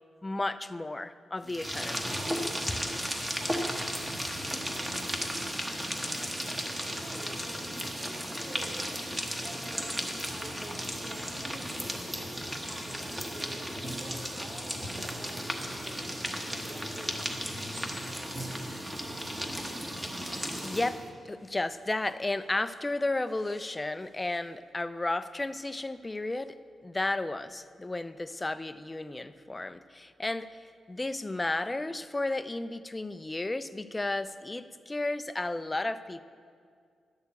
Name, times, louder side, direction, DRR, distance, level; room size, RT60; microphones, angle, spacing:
voice 1, 0.2-2.1 2.7-2.8 20.6-26.6 26.8-30.5 30.9-36.2, left 2 dB, 15° left, 13 dB, 0.4 m, -33 dB
sound 1, 1.4-21.1, equal, 15° right, 1.1 m, -35 dB
voice 2, 6.9-8.9 9.4-11.9 12.6-16.1 16.4-17.3, right 1 dB, 35° right, -9 dB, 3.2 m, -48 dB
12.0 x 6.7 x 8.1 m, 2.2 s
wide cardioid pair, 125°, 0 cm